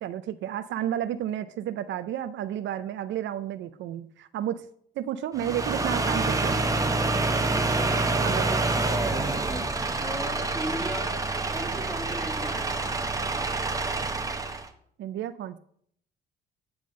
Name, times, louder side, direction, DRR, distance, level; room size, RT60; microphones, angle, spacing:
voice 1, 0.0-4.7 5.0-6.6 8.2-8.7 15.0-15.6, right 11 dB, 70° right, 11 dB, 0.4 m, -32 dB
sound 1, 5.3-14.7, right 3 dB, 15° right, 0.8 m, -27 dB
voice 2, 7.3-9.4 10.0-11.2 11.5-12.8, equal, 5° left, 1 dB, 1.8 m, -37 dB
9.4 x 3.4 x 6.4 m, 0.65 s
cardioid pair, 90°, 20 cm